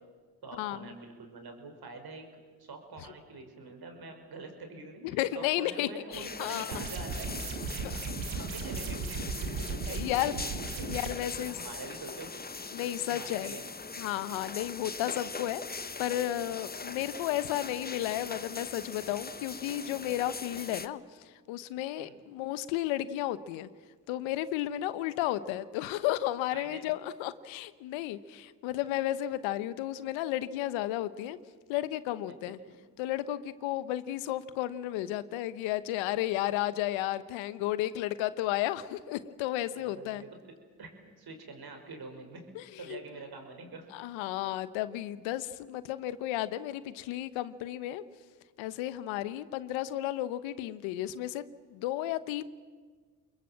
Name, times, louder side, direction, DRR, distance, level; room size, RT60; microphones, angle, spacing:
voice 1, 0.4-7.3 7.8-8.0 8.3-10.9 11.4-12.5 13.1-13.7 22.0-22.2 26.5-26.9 32.2-32.8 39.7-40.3 40.8-42.5 42.8-43.9, right 3 dB, 55° right, 5 dB, 5.7 m, -46 dB
voice 2, 5.1-6.7 7.8-8.0 9.9-10.4 10.8-11.6 12.7-13.5 14.0-21.0 21.5-23.7 24.1-31.4 31.7-32.6 33.0-40.2 42.5-42.6 42.9-43.0 43.9-48.0 48.6-51.4 51.7-52.4, left 14 dB, 85° left, 15 dB, 1.1 m, -33 dB
sound 1, 6.1-20.9, left 4 dB, 20° left, 1.2 m, -41 dB
sound 2, 6.7-11.1, right 4 dB, 85° right, 2.5 m, -36 dB
28.5 x 21.5 x 7.6 m, 1.5 s
supercardioid pair, 55°, 45 cm